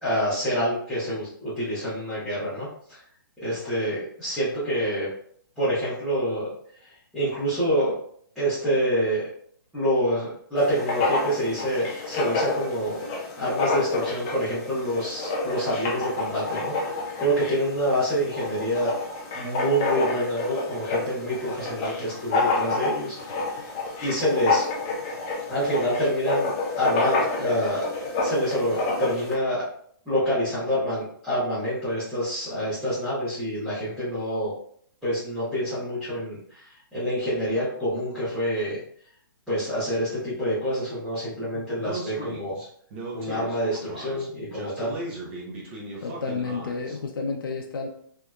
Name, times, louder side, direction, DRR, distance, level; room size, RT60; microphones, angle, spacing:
voice 1, 0.0-3.0 3.4-5.1 5.6-6.5 7.1-7.9 8.3-9.2 9.7-13.0 13.4-18.9 19.3-23.6 24.0-24.6 25.5-27.8 28.2-29.6 30.0-34.5 35.0-36.6 36.9-38.8 39.5-42.6 43.1-44.9, equal, 5° right, -16 dB, 0.9 m, -27 dB
Writing, 10.6-29.3, left 3 dB, 15° left, 0.4 m, -29 dB
Speech, 41.8-47.0, right 2 dB, 30° right, 0.8 m, -37 dB
voice 2, 46.0-47.9, left 4 dB, 70° left, 1 dB, 0.5 m, -31 dB
3.3 x 2.8 x 2.3 m, 0.62 s
hypercardioid pair, 175°, 12 cm